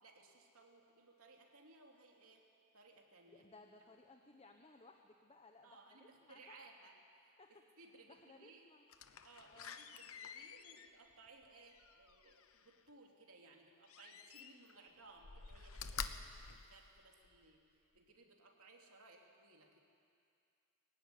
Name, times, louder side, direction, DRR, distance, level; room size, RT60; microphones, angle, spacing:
voice 1, 0.0-2.5 2.7-3.5 5.6-8.7 9.2-16.2 16.5-19.8, right 3 dB, 70° right, 1 dB, 3.0 m, -62 dB
voice 2, 3.3-6.6 7.4-7.5 8.1-8.8 9.5-9.7, left 3 dB, 25° left, 4 dB, 1.1 m, -61 dB
Slam, 8.9-12.8 13.9-14.8 15.2-17.5 18.0-18.1, left 6 dB, 70° left, 0.9 m, -49 dB
22.5 x 16.0 x 9.9 m, 2.5 s
head